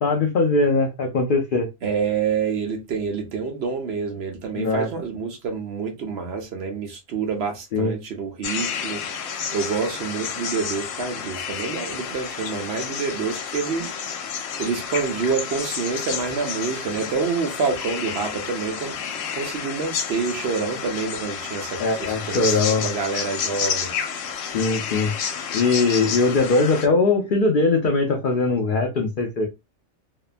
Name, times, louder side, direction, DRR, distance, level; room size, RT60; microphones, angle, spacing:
voice 1, 0.0-1.7 4.5-4.9 7.7-7.9 21.8-22.8 24.5-25.1 25.5-29.5, left 3 dB, 70° left, 0.5 m, -21 dB
voice 2, 1.8-9.0 9.5-13.9 14.6-19.0 19.3-23.9, right 5 dB, 60° right, 0.7 m, -27 dB
sound 1, 8.4-26.9, left 7 dB, 85° left, 1.0 m, -30 dB
2.7 x 2.1 x 2.4 m
omnidirectional pair, 1.4 m